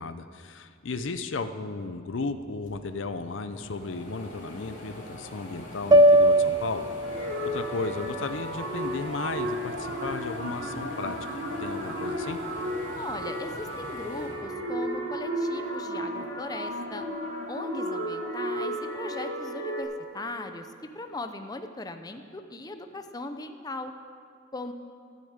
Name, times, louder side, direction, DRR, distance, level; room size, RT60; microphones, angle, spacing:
voice 1, 0.0-6.9 7.2-11.2 11.6-12.4, left 3 dB, 70° left, 10 dB, 0.6 m, -34 dB
sound 1, 2.3-2.4 2.6-15.2 15.7-16.8, left 1 dB, 40° left, 2.6 m, -44 dB
sound 2, 5.9-10.2, right 1 dB, 20° right, 0.3 m, -23 dB
sound 3, 7.0-19.8, equal, 85° right, 2.9 m, -33 dB
voice 2, 12.9-17.1 17.5-23.9 24.5-24.7, left 2 dB, 20° left, 7 dB, 0.6 m, -39 dB
13.5 x 6.6 x 8.8 m, 2.4 s
head